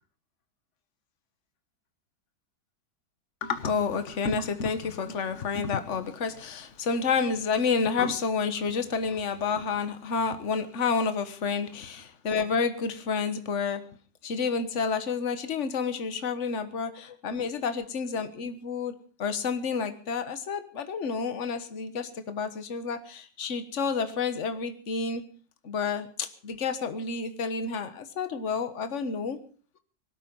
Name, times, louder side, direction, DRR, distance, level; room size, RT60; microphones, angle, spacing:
voice 1, 3.4-13.8 14.2-18.9 19.2-25.2 25.6-29.4, left 5 dB, 45° left, 10 dB, 1.6 m, -29 dB
19.5 x 13.0 x 5.4 m, 0.42 s
omnidirectional pair, 1.9 m